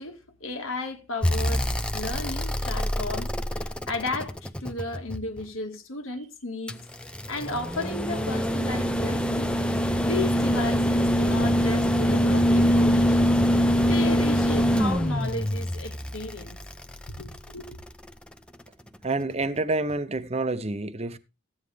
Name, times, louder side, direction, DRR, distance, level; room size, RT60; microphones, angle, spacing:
voice 1, 0.0-1.7 1.9-3.3 3.6-6.8 7.3-9.5 10.0-13.3 13.9-16.6 17.2-17.8, left 2 dB, 90° left, 1.8 m, -34 dB
sound 1, 1.2-5.4 6.7-17.9 19.4-19.5, equal, 5° left, 0.6 m, -24 dB
voice 2, 19.0-21.2, right 2 dB, 30° right, 0.7 m, -28 dB
14.5 x 9.6 x 3.4 m
head